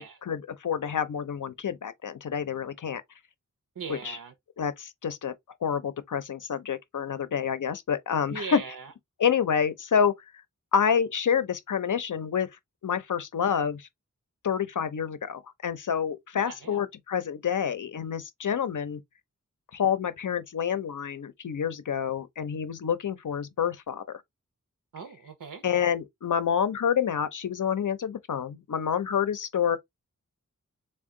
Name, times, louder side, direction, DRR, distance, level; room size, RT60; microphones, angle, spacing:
voice 1, 0.3-3.0 3.9-4.2 4.6-5.3 5.6-8.6 9.2-10.1 10.7-12.5 12.8-13.9 14.4-19.0 19.7-24.0 25.6-29.8, left 7 dB, 70° left, 0.6 m, -28 dB
voice 2, 3.8-4.3 8.3-8.9 16.3-16.8 24.9-25.6, right 5 dB, 75° right, 0.6 m, -40 dB
3.5 x 2.2 x 3.6 m
wide cardioid pair, 60°, 32 cm